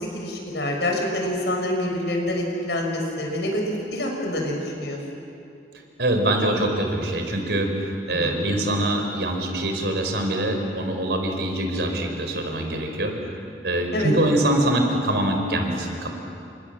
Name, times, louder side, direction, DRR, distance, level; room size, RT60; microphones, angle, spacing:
voice 1, 0.0-5.0 8.2-8.3 13.9-14.1, left 1 dB, 75° left, 1 dB, 6.5 m, -26 dB
voice 2, 6.0-13.1 13.6-16.1, right 1 dB, 70° right, 4 dB, 4.6 m, -24 dB
29.5 x 27.0 x 7.5 m, 2.5 s
head